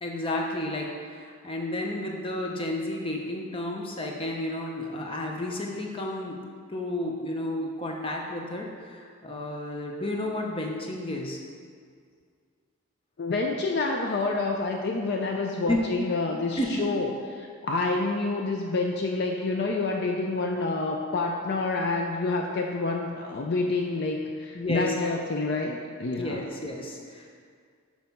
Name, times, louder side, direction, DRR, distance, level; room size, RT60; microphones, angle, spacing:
voice 1, 0.0-6.4 6.7-11.4 15.7-15.9 16.6-16.8 24.5-24.9 26.2-27.3, left 1 dB, 25° left, 0 dB, 0.8 m, -31 dB
voice 2, 13.2-26.4, left 3 dB, 50° left, 1 dB, 0.4 m, -28 dB
6.5 x 4.7 x 5.4 m, 2.1 s
head